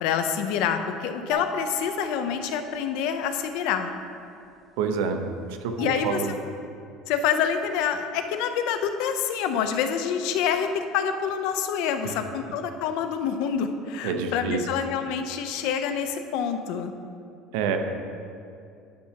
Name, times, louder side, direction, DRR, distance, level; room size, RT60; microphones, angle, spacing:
voice 1, 0.0-3.9 5.8-6.2 7.1-16.9, left 7 dB, 70° left, 8 dB, 0.5 m, -27 dB
sound 1, 1.3-3.6, right 3 dB, 15° right, 0.7 m, -39 dB
voice 2, 4.8-5.2 5.6-6.4 12.0-12.1 14.0-14.6 17.5-17.8, right 6 dB, 85° right, 6 dB, 0.6 m, -27 dB
10.0 x 5.7 x 2.8 m, 2.5 s
cardioid pair, 140°, 0 cm